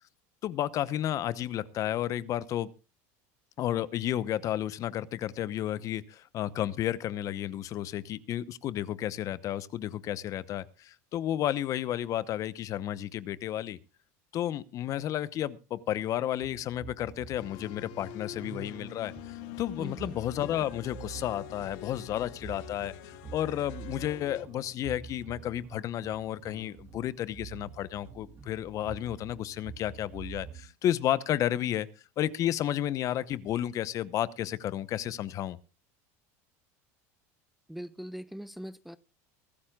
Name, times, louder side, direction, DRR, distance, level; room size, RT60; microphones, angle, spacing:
voice 1, 0.4-2.7 3.6-13.8 14.3-31.9 32.2-35.6, left 12 dB, 45° left, 0.9 m, -32 dB
sound 1, 16.4-30.6, right 7 dB, 30° right, 2.5 m, -47 dB
sound 2, 17.4-24.5, left 16 dB, 70° left, 1.0 m, -45 dB
voice 2, 19.8-20.2 37.7-39.0, equal, ahead, 0.6 m, -41 dB
23.5 x 13.0 x 2.4 m
supercardioid pair, 120°, 8 cm